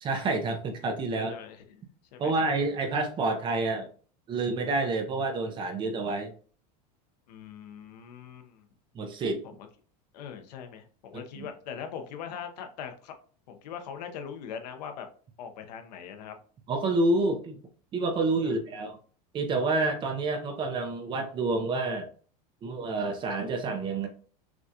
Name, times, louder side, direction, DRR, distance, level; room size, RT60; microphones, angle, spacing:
voice 1, 0.0-1.3 2.2-3.9 4.3-6.3 8.9-9.4 11.4-11.5 16.7-17.6 17.9-19.0 19.3-22.1 22.6-24.1, right 3 dB, 25° right, 5 dB, 0.7 m, -28 dB
voice 2, 1.1-1.8 2.1-2.5 7.3-8.7 9.4-9.7 10.1-13.1 13.5-15.1 15.4-16.4 18.4-18.6, left 7 dB, 85° left, 6 dB, 0.8 m, -41 dB
6.1 x 2.4 x 2.7 m, 0.42 s
supercardioid pair, 155°, 20 cm